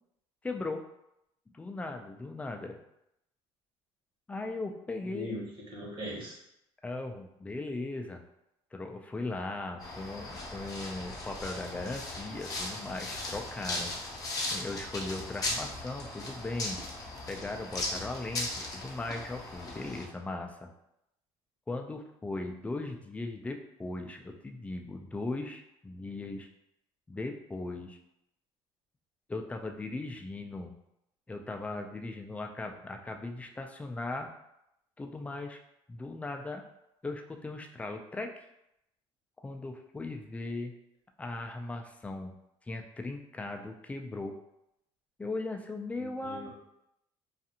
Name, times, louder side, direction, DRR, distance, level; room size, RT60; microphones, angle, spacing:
voice 1, 0.4-0.8 1.5-2.8 4.3-5.4 6.8-8.2 8.7-13.9 14.5-16.8 17.3-20.7 21.7-26.5 27.1-28.0 29.3-30.7 31.3-34.3 35.0-35.6 35.9-36.6 37.0-38.3 39.4-40.8 41.2-42.4 42.6-44.4 45.2-46.5, left 2 dB, 10° left, 4 dB, 0.3 m, -38 dB
voice 2, 5.0-6.4 46.0-46.5, left 1 dB, 55° right, -4 dB, 1.1 m, -40 dB
sound 1, 9.8-20.1, left 2 dB, 35° left, 0.7 m, -38 dB
2.5 x 2.4 x 2.7 m, 0.82 s
cardioid pair, 110°, 11 cm